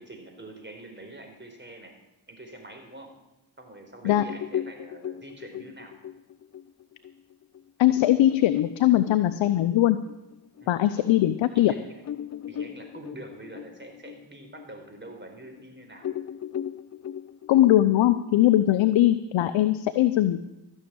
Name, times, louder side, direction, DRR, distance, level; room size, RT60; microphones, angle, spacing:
voice 1, 0.0-1.9 2.3-3.1 3.6-5.9 10.6-12.0 12.5-16.1 18.7-18.9, right 2 dB, 25° right, 4 dB, 4.3 m, -45 dB
sound 1, 4.1-11.1 11.6-11.7 12.0-15.6 16.0-19.1, left 10 dB, 35° left, 0.5 m, -38 dB
voice 2, 7.8-10.0 10.7-11.8 17.5-20.4, left 13 dB, 70° left, 11 dB, 0.8 m, -20 dB
14.0 x 6.6 x 8.7 m, 0.93 s
supercardioid pair, 45°, 48 cm